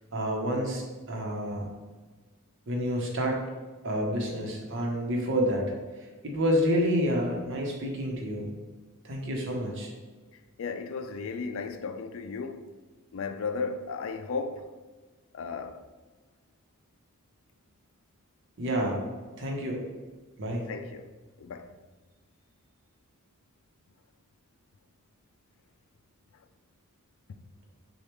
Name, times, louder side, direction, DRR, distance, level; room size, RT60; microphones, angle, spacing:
voice 1, 0.1-1.7 2.7-3.4 3.8-5.7 6.0-8.5 9.0-9.9 18.6-19.0 19.4-19.8 20.4-20.7, equal, 60° right, 0.9 m, -29 dB
voice 2, 10.6-12.7 13.1-14.7 15.3-15.8 20.5-21.1 21.4-21.7, left 4 dB, 65° left, 0.4 m, -35 dB
6.5 x 2.4 x 3.0 m
head